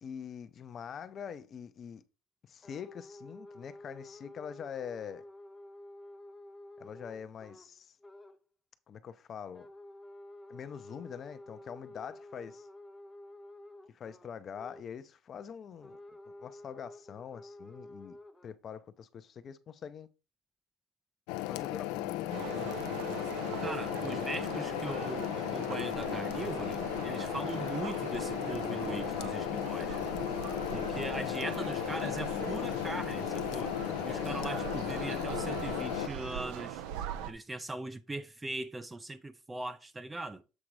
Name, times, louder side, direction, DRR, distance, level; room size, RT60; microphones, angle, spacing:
voice 1, 0.0-2.0 2.4-5.2 6.8-7.9 8.9-9.7 10.5-12.7 13.9-16.0 16.4-18.2 18.4-20.1 21.5-22.9, left 7 dB, 40° left, 0.6 m, -44 dB
sound 1, 2.6-7.7 8.0-8.4 9.5-14.9 15.8-18.5, left 1 dB, 10° left, 0.8 m, -51 dB
sound 2, 21.3-36.1, left 16 dB, 85° left, 0.5 m, -35 dB
sound 3, 22.3-37.3, right 9 dB, 80° right, 0.7 m, -40 dB
voice 2, 23.6-30.0 30.7-33.7 34.0-36.8 37.3-40.4, right 2 dB, 15° right, 0.4 m, -40 dB
7.5 x 3.9 x 4.7 m
cardioid pair, 120°, 0 cm